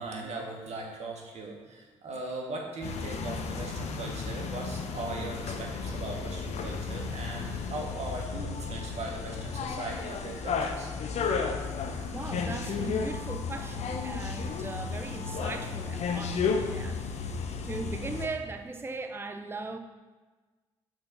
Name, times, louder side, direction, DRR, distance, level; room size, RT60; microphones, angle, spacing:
voice 1, 0.0-10.9 11.8-12.1, right 2 dB, 50° right, 0 dB, 1.8 m, -39 dB
sound 1, 2.8-18.3, left 5 dB, 50° left, 0.9 m, -33 dB
voice 2, 12.1-17.3 17.6-19.8, right 3 dB, 15° right, 7 dB, 0.6 m, -39 dB
7.3 x 4.8 x 6.0 m, 1.3 s
figure-of-eight pair, 40°, 14 cm